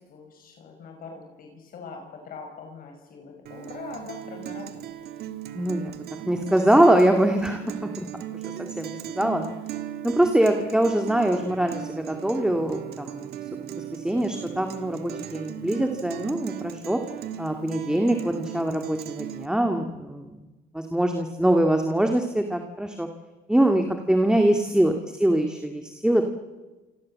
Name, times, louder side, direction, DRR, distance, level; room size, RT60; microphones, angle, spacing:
voice 1, 0.0-4.9 24.3-24.9, left 4 dB, 60° left, 3 dB, 5.5 m, -42 dB
Guitar, 3.5-19.5, right 11 dB, 70° right, 1.7 m, -37 dB
voice 2, 5.5-5.9 6.3-8.1 8.4-9.5 10.0-13.3 13.6-17.0 17.4-20.3 20.7-23.1 23.5-26.2, right 1 dB, 5° right, 4 dB, 2.1 m, -23 dB
28.0 x 24.5 x 7.6 m, 1.2 s
cardioid pair, 110°, 17 cm